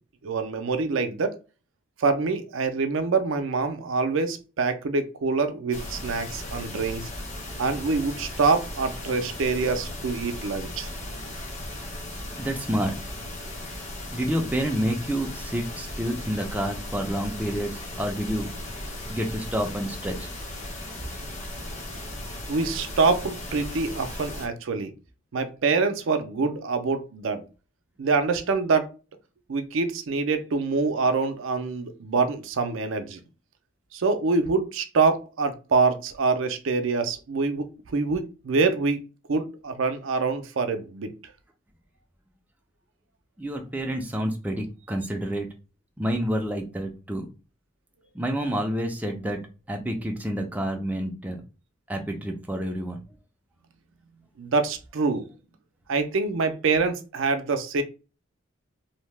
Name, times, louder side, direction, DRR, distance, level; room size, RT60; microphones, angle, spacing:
voice 1, 0.2-1.4 2.0-7.1 7.6-10.9 22.5-24.9 25.3-27.5 28.0-28.9 29.5-33.2 33.9-37.6 37.9-39.0 39.3-41.1 54.4-55.3 55.9-57.8, right 4 dB, 75° right, 8 dB, 0.5 m, -25 dB
sound 1, 5.7-24.5, left 1 dB, 35° left, 0.8 m, -37 dB
voice 2, 12.4-12.9 14.1-18.5 19.1-20.3 43.4-45.5 46.0-47.3 48.1-49.4 49.7-51.4 51.9-53.0, equal, 10° right, 2 dB, 0.4 m, -28 dB
2.7 x 2.1 x 3.1 m, 0.32 s
head